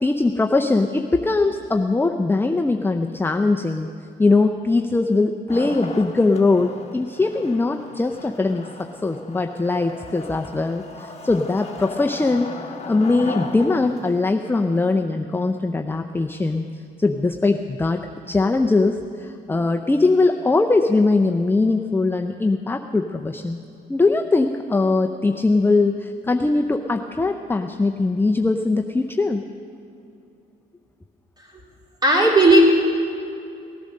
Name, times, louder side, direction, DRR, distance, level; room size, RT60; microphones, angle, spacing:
voice 1, 0.0-3.9 4.2-8.7 9.0-12.5 12.9-16.7 17.0-23.6 23.9-29.4, left 3 dB, 10° left, 4 dB, 0.6 m, -21 dB
Wood, 5.5-14.4, left 3 dB, 35° left, 1.2 m, -37 dB
voice 2, 32.0-32.6, right 2 dB, 20° right, -3 dB, 3.9 m, -14 dB
17.5 x 10.5 x 6.5 m, 2.6 s
cardioid pair, 90°, 20 cm